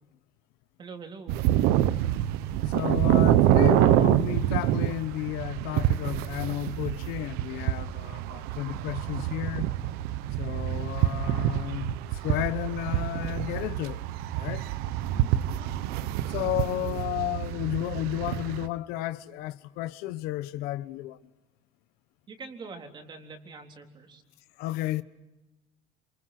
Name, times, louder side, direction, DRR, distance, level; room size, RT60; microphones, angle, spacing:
voice 1, 0.8-1.4 15.1-15.3 15.6-15.7 22.3-24.2, right 4 dB, 30° right, 3.8 m, -44 dB
sound 1, 1.3-18.7, right 13 dB, 75° right, 1.1 m, -26 dB
voice 2, 2.7-9.7 10.4-14.0 14.3-14.7 16.3-21.2 24.6-25.0, left 15 dB, 75° left, 1.2 m, -32 dB
29.5 x 28.0 x 6.0 m
cardioid pair, 160°, 16 cm